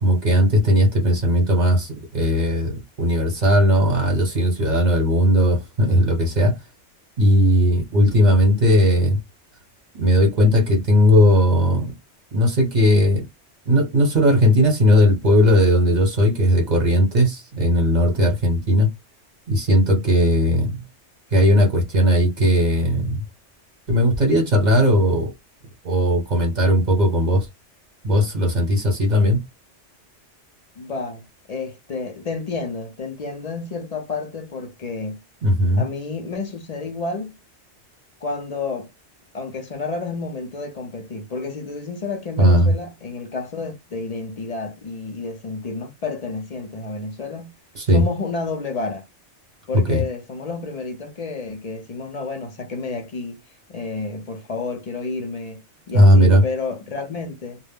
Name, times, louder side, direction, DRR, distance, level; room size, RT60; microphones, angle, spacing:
voice 1, 0.0-6.5 7.2-9.2 9.9-11.9 12.3-13.2 13.7-18.9 19.5-20.8 21.3-23.2 23.9-25.3 25.8-27.5 28.0-29.4 35.4-35.8 42.4-42.7 47.7-48.0 49.7-50.0 55.9-56.4, equal, 40° right, 1.0 m, -17 dB
voice 2, 30.8-35.2 35.7-37.4 38.2-38.9 39.3-47.5 47.9-49.1 49.7-53.4 53.7-57.6, left 3 dB, 45° left, 0.6 m, -30 dB
2.2 x 2.0 x 3.5 m
omnidirectional pair, 1.2 m